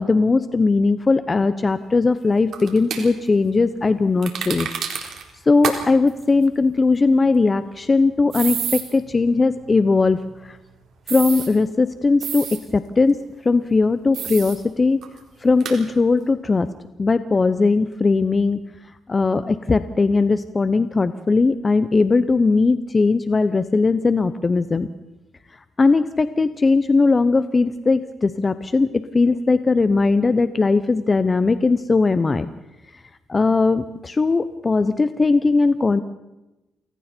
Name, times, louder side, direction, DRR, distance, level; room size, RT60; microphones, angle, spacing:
voice 1, 0.0-4.7 5.0-5.1 5.5-10.6 11.1-15.0 15.4-16.7 17.0-18.6 19.1-24.9 25.8-32.5 33.3-36.0, left 3 dB, 30° left, 12 dB, 0.9 m, -19 dB
sound 1, 2.5-3.0 4.2-5.2 5.6-5.8 6.1-6.2 8.3-8.8 11.1-11.5 12.2-12.6 14.1-14.6 15.0-15.1 15.6-15.8, right 8 dB, 70° right, 4.1 m, -28 dB
28.5 x 22.0 x 4.5 m, 1.0 s
cardioid pair, 90°, 0 cm